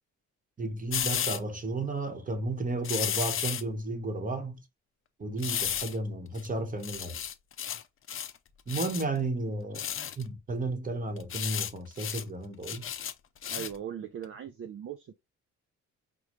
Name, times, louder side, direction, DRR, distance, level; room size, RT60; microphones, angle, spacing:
voice 1, 0.6-4.6 5.2-7.2 8.7-9.9 10.2-12.8, right 2 dB, 25° right, 1.0 m, -33 dB
sound 1, 0.9-1.4 2.8-3.6 5.4-6.0 6.4-6.5 6.8-7.8 8.1-8.4 8.7-9.0 9.7-10.2 11.2-11.7 12.0-12.2 12.6-13.8 14.2-14.3, left 9 dB, 45° left, 0.6 m, -33 dB
voice 2, 13.5-15.1, right 9 dB, 45° right, 0.6 m, -39 dB
5.2 x 2.3 x 3.1 m
cardioid pair, 90°, 30 cm